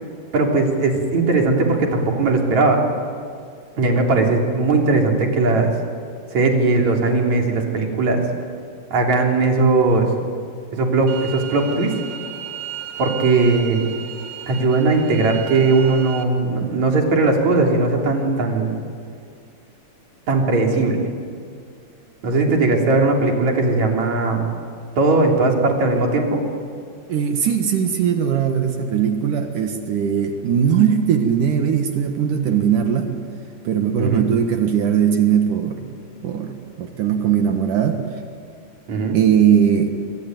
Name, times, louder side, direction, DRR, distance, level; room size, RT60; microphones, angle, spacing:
voice 1, 0.3-2.8 3.8-5.7 6.3-8.2 8.9-10.1 10.7-11.9 13.0-13.9 14.5-18.8 20.3-21.1 22.2-24.4 25.0-26.4 34.0-34.3 38.9-39.2, right 3 dB, 55° right, 1 dB, 4.6 m, -18 dB
sound 1, 11.1-16.2, right 9 dB, 90° right, 3.4 m, -34 dB
voice 2, 27.1-33.2 33.6-35.8 36.2-38.0 39.1-39.9, right 8 dB, 75° right, 5 dB, 3.1 m, -19 dB
26.0 x 24.0 x 9.3 m, 2.2 s
omnidirectional pair, 3.8 m